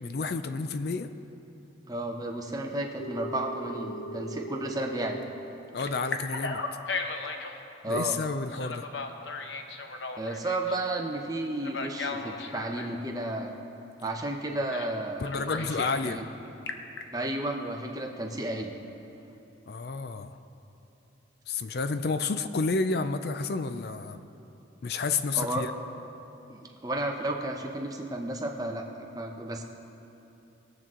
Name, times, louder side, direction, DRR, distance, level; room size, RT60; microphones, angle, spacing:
voice 1, 0.0-1.1 5.7-6.6 7.9-8.9 15.2-16.2 19.7-20.4 21.5-24.2 24.8-25.7, left 4 dB, 55° left, 10 dB, 0.4 m, -30 dB
voice 2, 1.9-5.2 7.2-7.3 7.8-8.2 10.2-13.5 14.0-16.3 17.1-18.7 25.3-25.6 26.5-29.6, right 1 dB, 20° right, 2 dB, 0.8 m, -33 dB
Telephone, 3.0-5.2 5.8-7.5 8.5-10.8 11.6-12.9 14.7-14.9 15.2-16.0 16.5-17.0, left 3 dB, 70° left, 0.8 m, -36 dB
20.5 x 7.7 x 3.7 m, 3.0 s
head